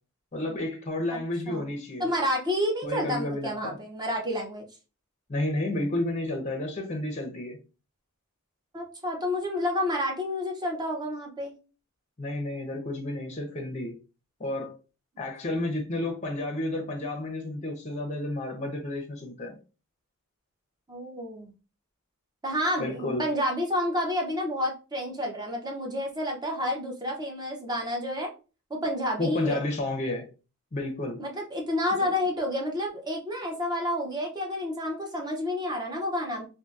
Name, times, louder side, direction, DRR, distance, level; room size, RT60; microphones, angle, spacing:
voice 1, 0.3-2.1 2.8-3.8 5.3-7.6 12.2-13.9 14.4-14.7 15.2-19.6 22.8-23.3 29.2-30.3 30.7-31.2 32.0-32.1, left 1 dB, 30° left, 0.6 m, -31 dB
voice 2, 2.0-4.6 8.7-11.5 20.9-21.5 22.4-28.3 28.7-29.6 31.2-36.5, left 1 dB, 20° right, 0.6 m, -29 dB
2.6 x 2.5 x 2.4 m
head